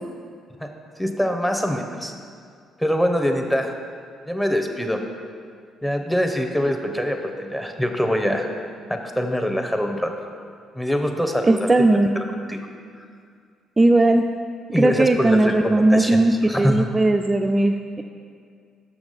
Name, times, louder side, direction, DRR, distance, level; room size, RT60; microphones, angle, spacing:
voice 1, 1.0-2.1 2.8-3.7 4.3-5.0 5.8-8.5 8.9-10.1 10.7-11.7 12.1-12.2 12.5-12.6 13.0-13.1 14.7-16.2 16.5-16.9, equal, 5° left, 3 dB, 0.8 m, -24 dB
voice 2, 11.4-12.1 13.8-14.2 14.8-16.3 16.6-18.0, right 2 dB, 25° right, 4 dB, 0.3 m, -17 dB
6.0 x 5.9 x 4.0 m, 2.2 s
hypercardioid pair, 50°, 0 cm